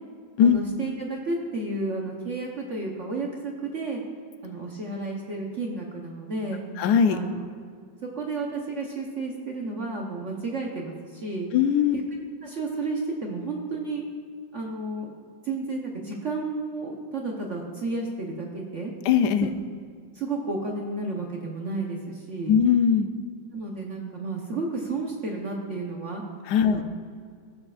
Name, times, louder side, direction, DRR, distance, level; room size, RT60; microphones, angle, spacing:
voice 1, 0.4-4.0 4.4-6.6 7.1-7.5 8.2-11.5 11.9-14.0 14.5-15.1 15.4-18.9 19.4-19.5 20.1-22.5 23.5-26.2 26.6-26.8, right 3 dB, 50° right, -1 dB, 1.0 m, -32 dB
voice 2, 6.8-7.2 11.5-11.9 19.0-19.5 22.5-23.1 26.5-26.8, left 8 dB, 70° left, 9 dB, 1.0 m, -20 dB
16.0 x 7.1 x 2.4 m, 2.1 s
omnidirectional pair, 2.0 m